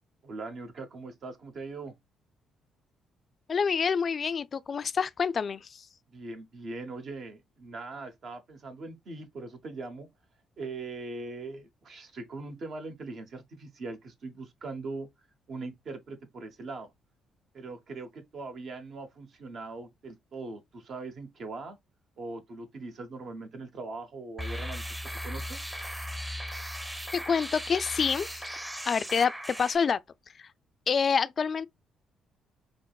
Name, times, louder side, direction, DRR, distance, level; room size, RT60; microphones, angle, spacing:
voice 1, 0.2-2.0 6.1-10.1 10.6-15.1 15.5-16.9 17.5-21.8 22.2-25.0 25.2-25.7, right 3 dB, 60° right, 0.9 m, -41 dB
voice 2, 3.5-5.9 27.1-28.5 28.8-30.0 30.4-30.5 30.9-31.7, left 6 dB, 50° left, 0.3 m, -27 dB
sound 1, 24.4-29.8, equal, 10° right, 0.7 m, -37 dB
5.1 x 2.0 x 2.3 m
supercardioid pair, 55°, 0 cm